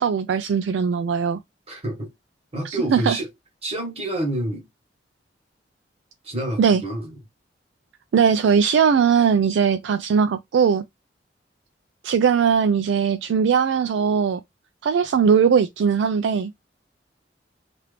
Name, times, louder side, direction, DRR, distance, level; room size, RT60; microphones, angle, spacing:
voice 1, 0.0-1.4 2.6-3.2 6.6-6.8 8.1-10.8 12.0-14.4 14.8-16.5, right 6 dB, 85° right, 0.3 m, -19 dB
voice 2, 1.7-2.1 2.5-3.3 3.6-4.7 6.2-7.1, right 1 dB, 35° right, 1.4 m, -28 dB
2.9 x 2.5 x 3.3 m
head